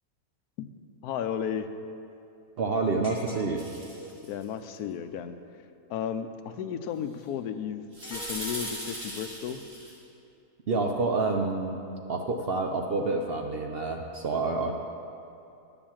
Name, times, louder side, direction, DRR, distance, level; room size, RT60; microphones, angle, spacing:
voice 1, 1.0-1.7 4.3-5.4 5.9-7.8 8.1-9.6, left 8 dB, 90° left, 10 dB, 1.1 m, -33 dB
voice 2, 2.6-3.7 10.7-11.8 12.1-14.8, right 3 dB, 55° right, 3 dB, 0.6 m, -28 dB
sound 1, 3.0-4.2 8.0-9.6, equal, 20° left, 1.1 m, -45 dB
sound 2, 3.6-4.4 7.9-9.9, equal, 40° right, 3.5 m, -38 dB
9.9 x 7.0 x 7.3 m, 2.7 s
omnidirectional pair, 1.6 m